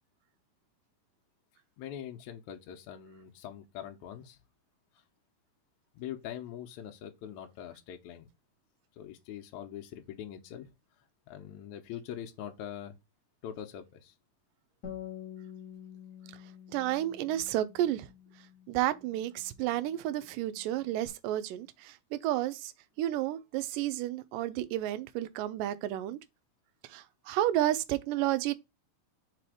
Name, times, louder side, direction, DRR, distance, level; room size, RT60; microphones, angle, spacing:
voice 1, 1.8-4.4 5.9-8.3 9.0-10.7 11.3-13.0 13.4-14.1, left 10 dB, 75° left, 1.9 m, -43 dB
Bass guitar, 14.8-21.1, left 9 dB, 50° left, 1.2 m, -49 dB
voice 2, 16.7-18.1 18.7-22.7 23.0-26.2 26.8-28.5, right 13 dB, 85° right, 2.2 m, -31 dB
4.9 x 4.3 x 4.8 m
omnidirectional pair, 3.9 m